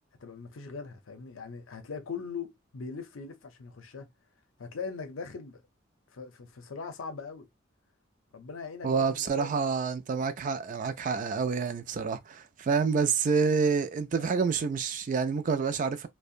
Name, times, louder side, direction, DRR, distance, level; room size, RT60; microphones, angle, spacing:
voice 1, 0.2-4.1 4.6-5.6 6.1-7.5 8.3-9.6 14.2-14.3, left 5 dB, 85° left, 0.6 m, -40 dB
voice 2, 8.8-16.1, right 5 dB, 40° right, 0.3 m, -28 dB
2.7 x 2.1 x 2.4 m
head